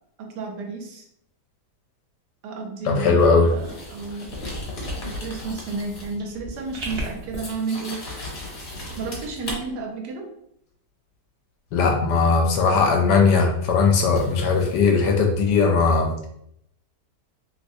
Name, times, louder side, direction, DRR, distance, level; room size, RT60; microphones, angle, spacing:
voice 1, 0.2-1.0 2.4-4.4 5.0-8.0 9.0-10.3, right 4 dB, 75° right, 2 dB, 1.2 m, -32 dB
voice 2, 2.8-3.5 11.7-16.1, left 4 dB, 75° left, 3 dB, 1.1 m, -19 dB
sound 1, 3.2-6.2 6.5-9.6 12.8-12.9 14.1-14.9, left 1 dB, 55° left, 1.3 m, -36 dB
sound 2, 5.6-7.5, right 2 dB, 55° right, 0.8 m, -37 dB
3.1 x 3.0 x 2.6 m, 0.73 s
omnidirectional pair, 1.9 m